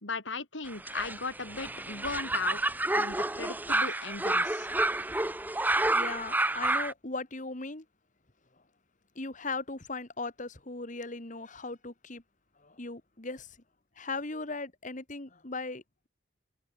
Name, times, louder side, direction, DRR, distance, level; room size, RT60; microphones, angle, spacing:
voice 1, 0.0-2.6 2.9-4.7, left 3 dB, 70° left, 4.1 m, -37 dB
sound 1, 0.7-6.9, right 2 dB, 10° right, 1.2 m, -29 dB
voice 2, 5.9-7.9 9.2-12.2 12.6-13.6 14.0-16.1, left 3 dB, 40° left, 2.1 m, -38 dB
open air
head